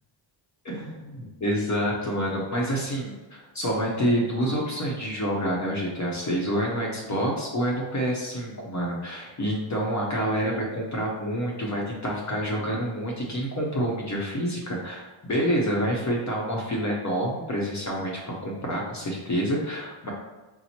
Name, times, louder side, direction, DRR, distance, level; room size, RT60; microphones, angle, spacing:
voice 1, 0.6-20.1, equal, 35° left, -3 dB, 0.8 m, -28 dB
4.3 x 2.0 x 4.2 m, 1.2 s
cardioid pair, 110°, 48 cm